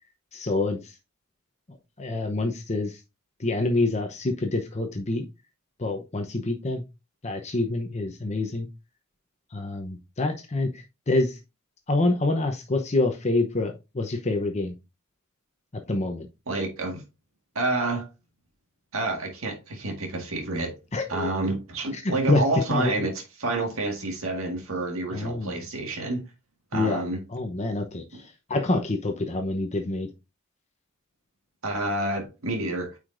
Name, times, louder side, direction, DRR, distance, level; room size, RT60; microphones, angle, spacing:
voice 1, 0.3-0.9 2.0-3.0 3.4-5.3 5.8-6.8 7.2-8.7 9.5-11.4 11.9-14.7 15.9-16.3 20.9-21.3 21.9-22.4 22.7-22.9 25.1-25.6 26.7-27.0 27.3-30.1, left 2 dB, 30° left, 0.8 m, -27 dB
voice 2, 16.5-17.0 17.6-18.1 18.9-20.8 21.1-26.2 26.7-27.2 31.6-33.0, right 2 dB, 70° right, 1.8 m, -29 dB
9.3 x 4.9 x 2.6 m
head